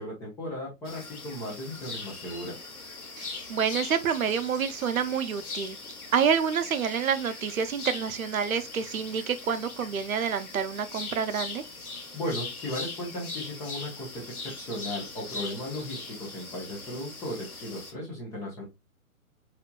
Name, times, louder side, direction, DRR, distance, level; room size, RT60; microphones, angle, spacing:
voice 1, 0.0-2.6 12.1-18.7, left 1 dB, 5° left, 0.6 m, -36 dB
sound 1, 0.8-17.9, left 3 dB, 90° left, 1.2 m, -40 dB
voice 2, 3.2-5.8 6.1-11.6, right 7 dB, 70° right, 0.7 m, -28 dB
4.3 x 2.9 x 2.2 m
hypercardioid pair, 135°, 43 cm